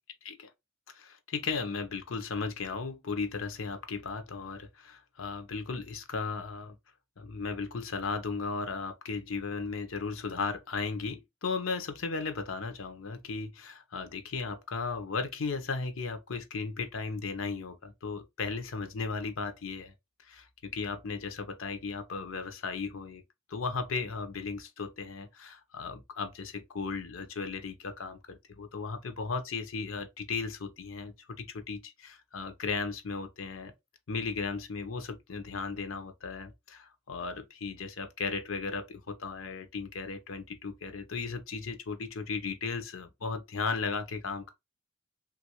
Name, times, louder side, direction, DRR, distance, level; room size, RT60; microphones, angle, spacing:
voice 1, 0.9-6.8 7.2-19.9 20.2-23.2 23.5-33.7 34.1-44.5, left 4 dB, 85° left, 0.7 m, -36 dB
3.1 x 2.5 x 2.9 m
head